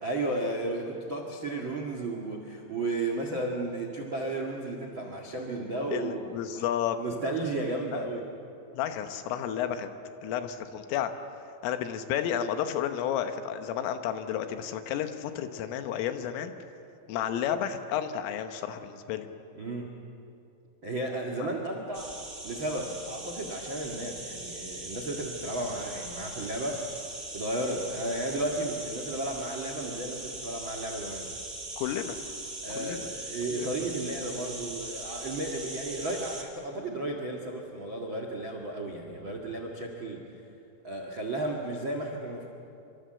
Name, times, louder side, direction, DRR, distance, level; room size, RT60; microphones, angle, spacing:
voice 1, 0.0-6.6 7.0-8.3 19.5-19.9 20.8-22.2 22.4-26.9 27.3-31.3 32.6-40.2 40.8-42.5, right 2 dB, 85° right, 2 dB, 1.0 m, -33 dB
voice 2, 5.9-7.0 8.8-9.9 10.2-11.1 11.6-16.5 17.1-19.3 21.4-21.5 31.8-32.2 32.8-33.1 33.5-33.7, left 9 dB, 80° left, 8 dB, 3.8 m, -31 dB
sound 1, 21.9-36.4, right 2 dB, 20° right, 1.5 m, -40 dB
26.5 x 25.5 x 7.9 m, 2.7 s
omnidirectional pair, 5.9 m